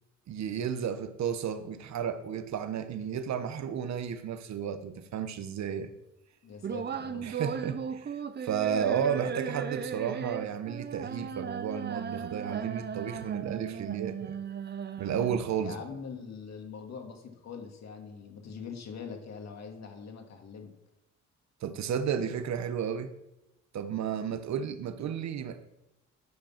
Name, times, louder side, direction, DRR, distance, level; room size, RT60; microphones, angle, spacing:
voice 1, 0.3-5.9 7.2-14.3 15.0-15.7 21.6-23.1 23.7-25.6, right 8 dB, 65° right, 1.1 m, -33 dB
voice 2, 6.4-7.3 15.6-20.7, left 5 dB, 60° left, 2.2 m, -43 dB
sound 1, 6.6-15.6, right 7 dB, 35° right, 0.7 m, -36 dB
12.0 x 5.2 x 5.9 m
cardioid pair, 90°, 30 cm